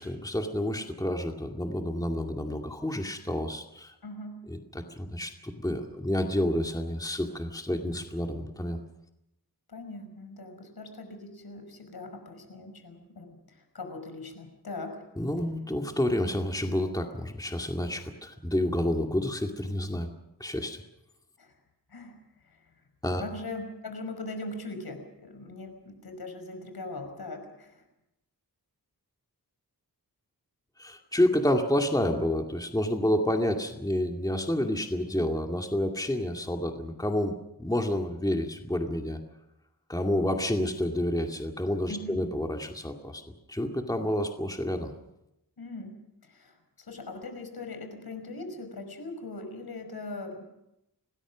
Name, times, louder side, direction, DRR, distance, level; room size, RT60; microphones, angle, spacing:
voice 1, 0.0-3.9 4.5-8.8 15.2-20.1 20.4-20.8 23.0-23.2 30.8-39.2 39.9-43.2 43.5-44.9, left 1 dB, 10° left, 3 dB, 2.3 m, -29 dB
voice 2, 4.0-4.4 9.7-15.0 21.4-21.5 21.9-22.1 22.5-22.6 23.2-27.8 41.9-42.2 45.6-45.9 46.2-50.4, left 2 dB, 70° left, 6 dB, 5.5 m, -40 dB
26.5 x 19.5 x 6.3 m, 0.87 s
wide cardioid pair, 80°, 39 cm